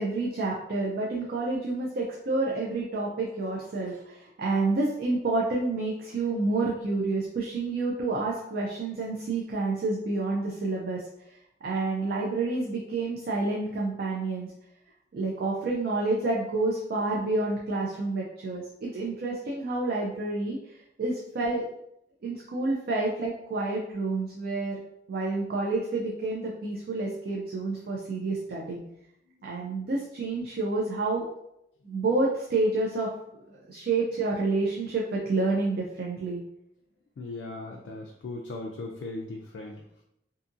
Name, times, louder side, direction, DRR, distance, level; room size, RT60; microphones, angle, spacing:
voice 1, 0.0-11.3 11.6-14.5 15.1-21.6 22.2-24.8 25.1-28.8 29.4-31.2 31.9-33.1 33.5-36.4, right 3 dB, 55° right, -3 dB, 0.4 m, -29 dB
voice 2, 37.2-39.8, left 2 dB, 65° left, 0 dB, 0.3 m, -38 dB
2.7 x 2.5 x 2.4 m, 0.79 s
head